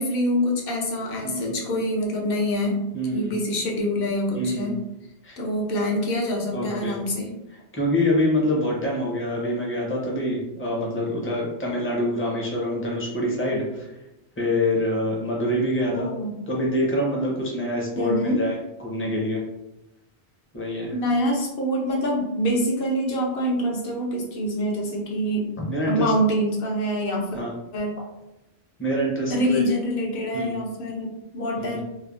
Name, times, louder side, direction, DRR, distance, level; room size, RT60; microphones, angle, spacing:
voice 1, 0.0-2.8 3.1-4.7 5.4-7.3 15.9-16.4 18.0-18.4 20.9-25.5 25.9-27.4 27.7-28.0 29.3-31.8, equal, 65° left, -1 dB, 0.8 m, -25 dB
voice 2, 1.2-1.5 2.9-3.3 4.4-4.7 5.2-5.4 6.5-6.9 7.7-13.9 14.4-16.1 16.5-19.4 20.5-20.9 25.7-26.1 27.3-27.5 28.8-29.6 30.3-30.6 31.6-31.8, left 1 dB, 15° left, -3 dB, 0.5 m, -25 dB
3.2 x 2.0 x 2.4 m, 0.93 s
omnidirectional pair, 1.1 m